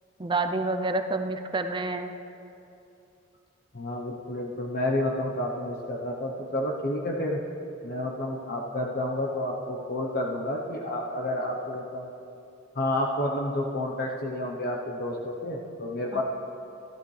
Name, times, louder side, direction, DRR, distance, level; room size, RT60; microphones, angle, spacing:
voice 1, 0.2-2.1 16.1-16.2, right 3 dB, 25° right, 7 dB, 0.5 m, -28 dB
voice 2, 3.7-7.4 7.8-12.1 12.7-16.2, left 1 dB, 50° left, -1 dB, 0.9 m, -30 dB
13.5 x 12.0 x 3.2 m, 2.8 s
head